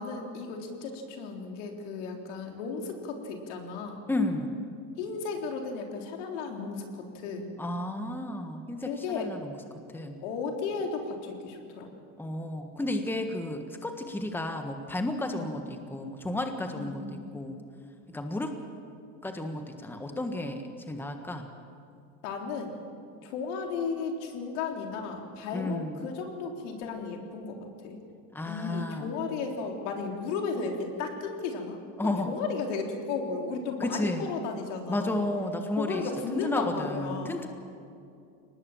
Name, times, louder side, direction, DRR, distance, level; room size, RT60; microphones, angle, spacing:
voice 1, 0.0-4.0 5.0-7.5 8.9-9.3 10.2-11.9 15.3-15.5 16.8-17.2 22.2-22.8 23.2-28.0 28.4-31.8 32.0-35.2 35.8-37.4, left 5 dB, 80° left, 2 dB, 3.8 m, -34 dB
voice 2, 4.1-4.6 7.6-9.5 9.9-10.2 12.2-17.6 18.1-18.6 19.2-21.5 25.5-26.1 28.3-29.2 32.0-32.3 33.8-34.2 34.9-36.0 36.3-37.5, left 1 dB, 5° left, 5 dB, 1.5 m, -32 dB
23.0 x 19.5 x 7.3 m, 2.5 s
supercardioid pair, 120°, 36 cm